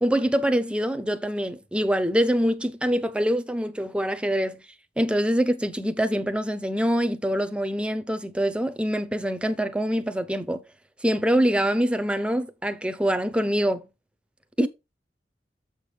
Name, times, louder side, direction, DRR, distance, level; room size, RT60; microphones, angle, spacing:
voice 1, 0.0-4.6 5.0-10.6 11.0-13.8 14.6-14.7, equal, 5° right, 0.6 m, -24 dB
7.1 x 6.3 x 3.3 m
head